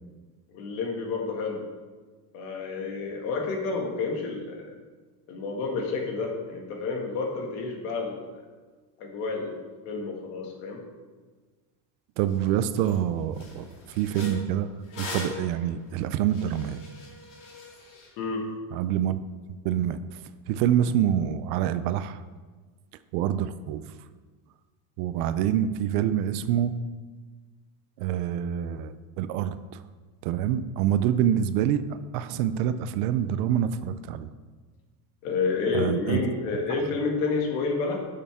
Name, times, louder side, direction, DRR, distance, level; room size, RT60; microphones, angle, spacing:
voice 1, 0.5-1.6 2.3-4.7 5.3-8.3 9.0-10.8 18.2-18.5 35.2-38.0, left 4 dB, 65° left, 1 dB, 2.1 m, -30 dB
voice 2, 12.2-13.7 14.0-16.8 18.7-19.2 19.6-20.0 20.5-22.2 23.1-23.8 25.0-26.7 28.0-29.8 30.2-31.8 32.1-34.3 35.7-36.2, right 10 dB, 65° right, 13 dB, 0.6 m, -26 dB
sound 1, 12.3-12.4 12.8-13.0 13.3-18.1, left 3 dB, 40° left, 2.4 m, -41 dB
11.0 x 6.7 x 3.6 m, 1.4 s
cardioid pair, 170°, 47 cm